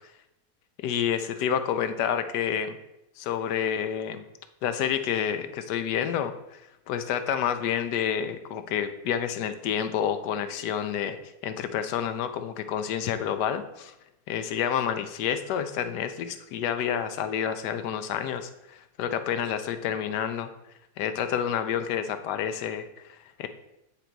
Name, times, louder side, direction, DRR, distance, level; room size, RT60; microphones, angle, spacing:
voice 1, 0.8-2.8 3.2-4.3 4.6-6.6 6.9-11.2 11.4-13.9 14.3-20.5 21.0-23.5, left 9 dB, 90° left, 10 dB, 1.2 m, -29 dB
8.8 x 3.9 x 4.5 m, 0.88 s
omnidirectional pair, 1.7 m